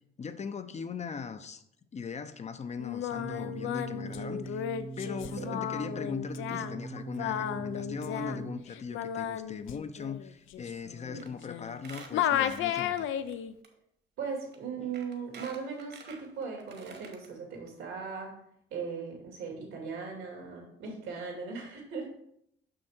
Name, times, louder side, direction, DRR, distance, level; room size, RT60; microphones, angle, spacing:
voice 1, 0.2-1.6 1.9-4.6 5.0-13.1, left 6 dB, 35° left, 10 dB, 0.6 m, -39 dB
Singing, 2.8-11.8 12.1-13.5, left 10 dB, 80° left, 0.5 m, -34 dB
sound 1, 3.1-8.6, right 4 dB, 25° right, 0.5 m, -41 dB
Squeak, 11.2-11.4 11.7-13.3 13.6-13.7 14.5-14.6 14.9-17.3 17.7-17.8 18.0-18.1, right 5 dB, 55° right, 1.5 m, -49 dB
voice 2, 14.2-18.3 18.7-22.1, right 5 dB, 85° right, 0 dB, 2.7 m, -38 dB
6.4 x 5.7 x 4.3 m, 0.73 s
cardioid pair, 90°, 20 cm